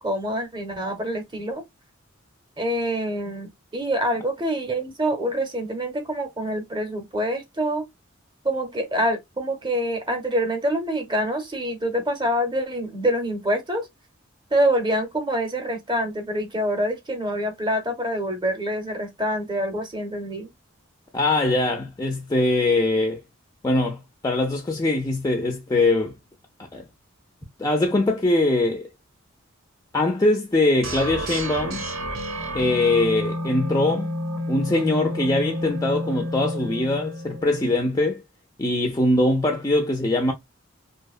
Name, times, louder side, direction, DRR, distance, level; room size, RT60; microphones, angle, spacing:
voice 1, 0.0-1.6 2.6-7.8 8.4-13.9 14.5-20.5, equal, 20° right, 0.7 m, -26 dB
voice 2, 21.1-23.2 23.6-26.1 26.7-26.8 27.6-28.9 29.9-31.9 32.5-34.1 34.5-38.2 38.6-40.3, left 2 dB, 15° left, 0.3 m, -22 dB
sound 1, 30.8-37.8, equal, 70° right, 0.7 m, -30 dB
2.7 x 2.1 x 2.3 m
head